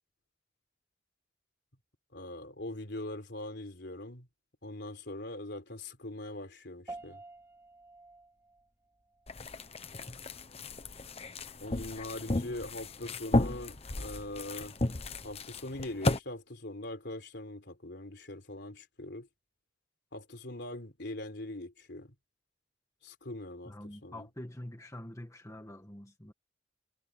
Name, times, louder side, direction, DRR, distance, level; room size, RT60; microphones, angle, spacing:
voice 1, 2.1-4.3 4.6-7.2 11.6-14.8 15.2-19.3 20.1-22.1 23.0-24.3, left 1 dB, 60° left, 4.1 m, -42 dB
sound 1, 6.9-16.5, right 2 dB, 15° right, 4.7 m, -54 dB
sound 2, 9.3-16.2, left 2 dB, 35° left, 1.1 m, -34 dB
voice 2, 23.6-26.3, left 1 dB, 15° left, 1.5 m, -45 dB
head